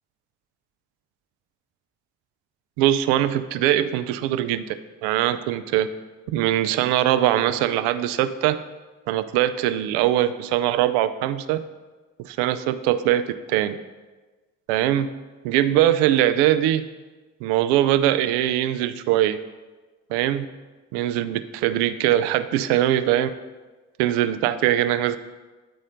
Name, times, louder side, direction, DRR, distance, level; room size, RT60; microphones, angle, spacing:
voice 1, 2.8-4.8 5.0-5.9 6.3-8.6 9.1-11.6 12.2-13.2 13.5-13.8 14.7-15.1 15.4-16.9 17.4-19.4 20.1-20.5 20.9-23.3 24.0-25.2, right 12 dB, 75° right, 12 dB, 0.5 m, -21 dB
10.0 x 4.2 x 5.1 m, 1.3 s
hypercardioid pair, 45°, 40 cm